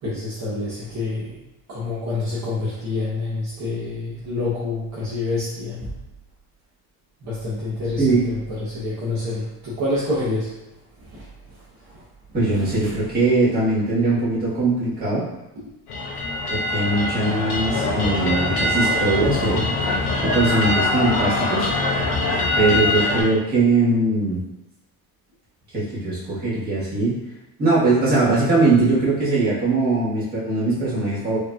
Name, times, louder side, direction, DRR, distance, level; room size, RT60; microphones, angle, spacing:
voice 1, 0.0-1.4 1.7-5.9 7.2-10.6 11.0-12.0 12.5-12.9, left 2 dB, 45° right, -9 dB, 1.0 m, -28 dB
voice 2, 12.3-15.3 16.5-19.9 20.2-21.7 22.6-24.4 25.7-27.2 27.6-31.4, right 2 dB, 25° right, -9 dB, 1.3 m, -21 dB
sound 1, 15.9-23.2, left 2 dB, 90° left, 1.0 m, -23 dB
4.7 x 2.8 x 2.3 m, 0.95 s
cardioid pair, 175°, 39 cm